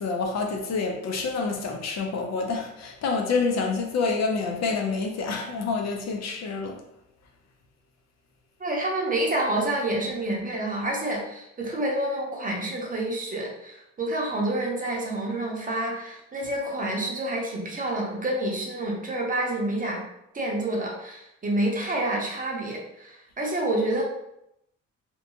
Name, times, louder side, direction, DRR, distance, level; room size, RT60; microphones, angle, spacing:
voice 1, 0.0-6.7, left 4 dB, 60° left, 0.5 m, -27 dB
voice 2, 8.6-20.0 20.3-24.0, right 1 dB, 25° right, 0.7 m, -28 dB
2.7 x 2.2 x 2.7 m
cardioid pair, 90°, 30 cm